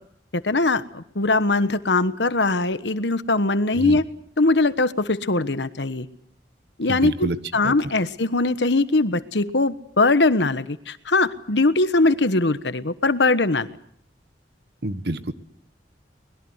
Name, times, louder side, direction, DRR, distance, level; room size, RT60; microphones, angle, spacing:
voice 1, 0.4-4.0 4.4-6.1 6.8-13.7, left 2 dB, 80° left, 12 dB, 1.3 m, -21 dB
voice 2, 6.9-7.4 7.6-7.7 14.8-15.3, right 1 dB, 65° right, 12 dB, 1.4 m, -27 dB
24.0 x 21.0 x 8.0 m, 0.67 s
head